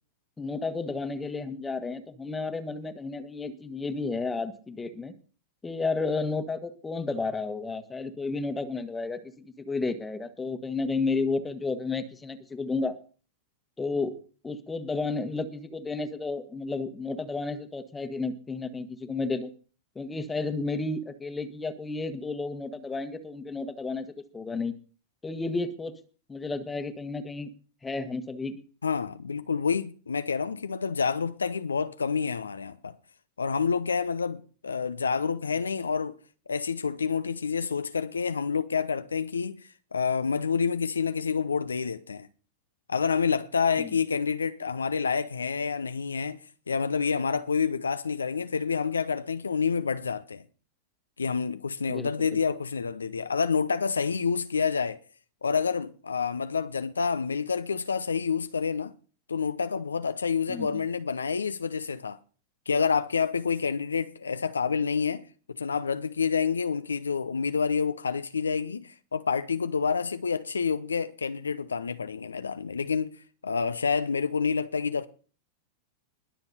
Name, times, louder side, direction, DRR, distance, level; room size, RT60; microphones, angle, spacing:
voice 1, 0.4-5.1 5.6-9.3 9.6-13.0 13.8-14.2 14.4-19.5 19.9-24.1 24.3-24.7 25.2-26.0 26.3-27.5 27.8-28.6 43.8-43.9 51.9-52.4 60.5-60.8, left 3 dB, 10° left, 1.5 m, -32 dB
voice 2, 28.8-33.0 33.4-36.2 36.5-42.3 42.9-46.4 46.7-50.4 51.2-55.0 55.4-58.9 59.3-62.2 62.7-65.2 65.5-73.2 73.4-75.1, left 5 dB, 75° left, 0.6 m, -28 dB
21.0 x 7.1 x 4.2 m
figure-of-eight pair, 90°, 0 cm